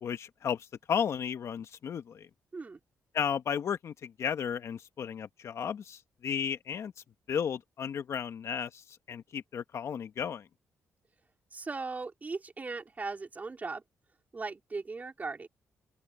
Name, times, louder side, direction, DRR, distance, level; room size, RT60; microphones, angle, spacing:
voice 1, 0.0-2.3 3.1-6.9 7.3-10.5, left 7 dB, 60° left, 1.6 m, -34 dB
voice 2, 11.5-13.8 14.3-15.5, right 3 dB, 30° right, 4.3 m, -38 dB
open air
cardioid pair, 95°, 5 cm